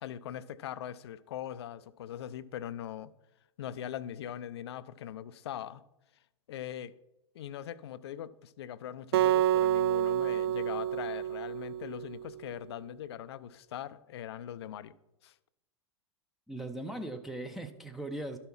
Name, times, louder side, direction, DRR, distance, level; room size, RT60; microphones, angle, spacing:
voice 1, 0.0-3.1 3.6-5.8 6.5-6.9 7.3-14.9 15.2-15.3, left 10 dB, 60° left, 0.5 m, -41 dB
Acoustic guitar, 9.1-12.4, right 11 dB, 55° right, 0.4 m, -28 dB
voice 2, 16.5-18.4, right 1 dB, ahead, 0.6 m, -39 dB
12.0 x 5.6 x 4.4 m
figure-of-eight pair, 95°, 15 cm